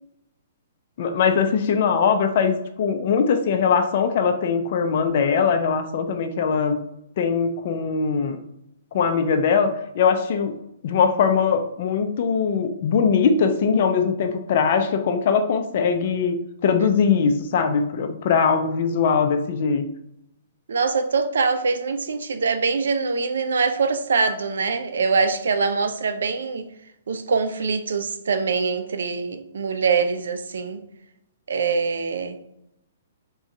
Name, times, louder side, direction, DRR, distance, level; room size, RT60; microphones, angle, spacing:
voice 1, 1.0-6.8 7.2-8.4 8.9-10.6 10.8-19.8, left 6 dB, 55° left, 0.5 m, -21 dB
voice 2, 20.7-26.6 27.1-30.8 31.5-32.4, right 4 dB, 80° right, 0.5 m, -23 dB
3.6 x 2.3 x 4.2 m
hypercardioid pair, 130°, 0 cm